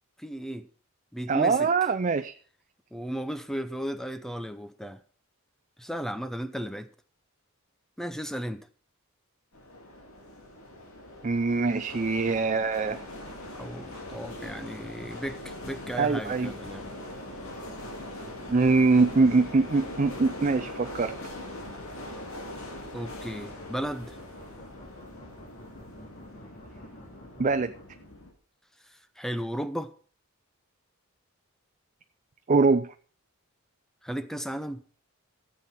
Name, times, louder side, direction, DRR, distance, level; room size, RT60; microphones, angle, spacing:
voice 1, 0.2-0.7 1.1-1.7 2.9-5.0 5.8-6.9 8.0-8.7 13.5-16.9 22.9-24.2 29.2-29.9 34.0-34.8, equal, ahead, 0.7 m, -35 dB
voice 2, 1.3-2.3 11.2-13.0 16.0-16.5 18.5-21.1 27.4-27.7 32.5-32.9, right 4 dB, 35° right, 0.4 m, -23 dB
sound 1, 9.5-28.3, left 1 dB, 65° left, 2.6 m, -42 dB
sound 2, 13.0-27.8, equal, 35° left, 2.8 m, -51 dB
14.5 x 7.7 x 5.7 m
head